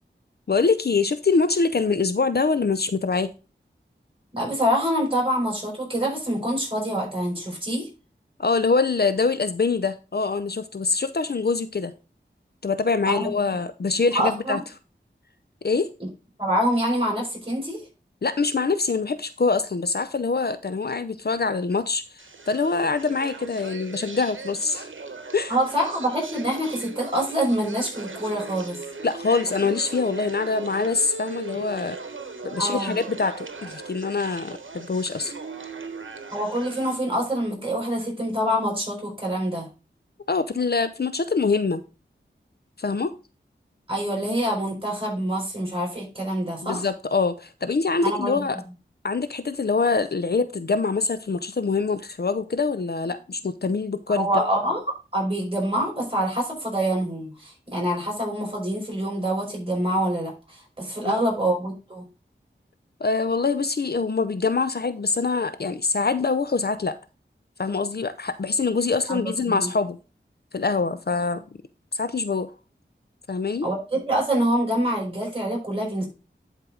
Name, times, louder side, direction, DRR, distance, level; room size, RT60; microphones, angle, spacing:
voice 1, 0.5-3.3 8.4-11.9 12.6-14.6 15.6-15.9 18.2-22.0 22.5-24.9 25.3-25.5 29.0-32.0 32.4-35.3 40.3-41.8 42.8-43.1 46.6-48.6 49.0-54.3 61.1-61.2 63.0-66.9 67.6-70.0 70.5-71.4 71.9-72.5 73.3-73.7, left 4 dB, 55° left, 0.6 m, -24 dB
voice 2, 4.3-7.9 13.1-13.3 14.1-14.6 16.4-17.8 25.5-28.8 32.6-32.9 36.3-39.7 43.9-46.9 48.0-48.4 54.1-62.1 69.1-69.7 73.6-76.1, right 1 dB, 25° right, 5.2 m, -26 dB
sound 1, 22.2-37.0, right 4 dB, 80° right, 1.1 m, -38 dB
11.0 x 4.6 x 3.8 m
wide cardioid pair, 50°, 20 cm